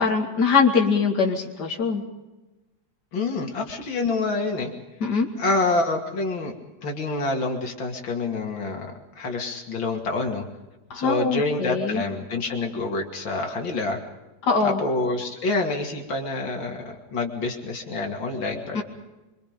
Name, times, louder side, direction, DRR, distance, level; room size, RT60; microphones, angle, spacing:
voice 1, 0.0-2.0 5.0-5.3 10.9-12.0 14.5-14.8 18.7-18.8, left 5 dB, 60° left, 0 dB, 2.9 m, -22 dB
voice 2, 3.1-4.7 5.4-6.5 6.8-10.4 10.9-14.0 14.6-18.8, left 3 dB, 80° left, 1 dB, 3.2 m, -27 dB
25.5 x 25.0 x 5.3 m, 1.1 s
omnidirectional pair, 2.1 m